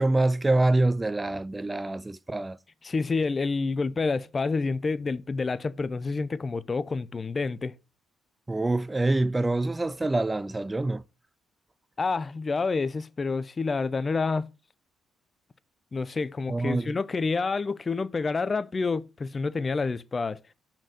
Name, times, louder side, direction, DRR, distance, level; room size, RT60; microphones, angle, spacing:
voice 1, 0.0-2.6 8.5-11.0 16.5-17.0, right 2 dB, 20° right, 0.4 m, -25 dB
voice 2, 2.8-7.7 12.0-14.5 15.9-20.4, left 4 dB, 35° left, 0.5 m, -28 dB
5.9 x 4.4 x 5.2 m
hypercardioid pair, 50°, 0 cm